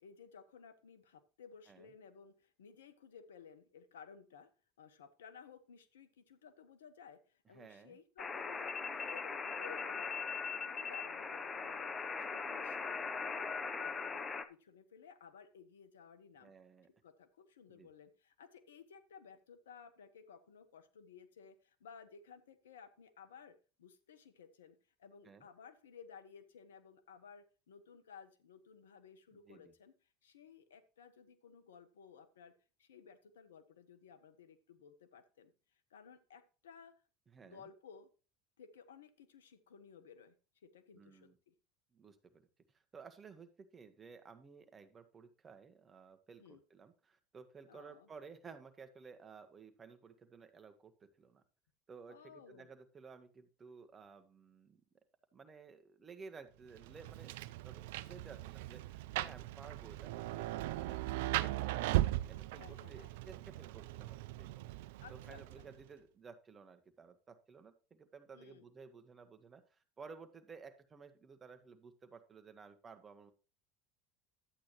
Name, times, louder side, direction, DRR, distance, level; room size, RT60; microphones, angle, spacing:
voice 1, 0.0-4.5 4.8-10.2 10.5-11.9 12.2-16.5 17.0-29.9 30.2-32.5 32.8-35.5 35.9-36.9 37.4-38.1 38.6-40.3 40.6-41.5 46.4-46.6 47.7-48.1 52.1-52.7 62.6-63.1 65.0-65.7 68.3-68.6, left 6 dB, 85° left, 12 dB, 1.0 m, -57 dB
voice 2, 7.5-8.0 16.4-16.9 17.7-17.9 25.2-25.5 29.4-29.7 37.3-37.7 40.9-41.4 41.9-42.4 42.7-51.4 51.9-54.8 55.3-64.8 65.1-73.3, right 5 dB, 30° right, 8 dB, 1.4 m, -55 dB
sound 1, 8.2-14.4, left 5 dB, 30° left, 0.9 m, -40 dB
Rain, 56.7-65.8, right 17 dB, 70° right, 0.4 m, -38 dB
11.5 x 8.5 x 3.1 m, 0.34 s
hypercardioid pair, 80°, 0 cm